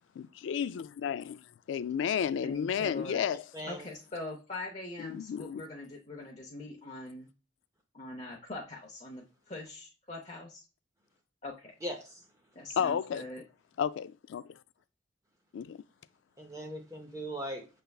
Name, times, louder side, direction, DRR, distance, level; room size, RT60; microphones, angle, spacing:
voice 1, 0.2-3.4 5.0-5.6 12.8-13.3 13.8-14.6 15.5-15.8, left 8 dB, 75° left, 0.3 m, -32 dB
voice 2, 2.4-3.2 3.6-7.3 7.9-10.6 11.4-11.7 12.5-13.4, left 2 dB, 35° left, 0.6 m, -42 dB
voice 3, 3.5-3.9 11.8-12.3 16.4-17.7, equal, 15° right, 0.6 m, -39 dB
6.7 x 3.3 x 2.3 m
head